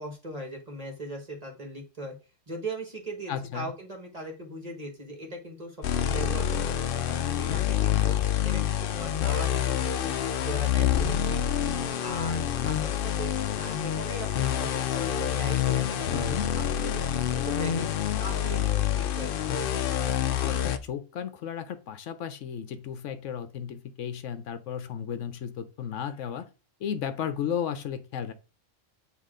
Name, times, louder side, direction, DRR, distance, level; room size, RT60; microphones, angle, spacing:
voice 1, 0.0-2.1 2.5-6.8 7.2-8.2 8.4-10.1 10.4-11.6 12.0-16.3 16.7-17.9 18.2-19.5, right 1 dB, 30° right, 1 dB, 1.5 m, -39 dB
voice 2, 3.3-3.7 16.1-16.4 20.4-26.5 26.8-28.3, left 8 dB, 75° left, 11 dB, 1.0 m, -34 dB
sound 1, 5.8-20.8, left 10 dB, 60° left, 0.6 m, -27 dB
8.4 x 3.0 x 3.7 m, 0.33 s
omnidirectional pair, 1.3 m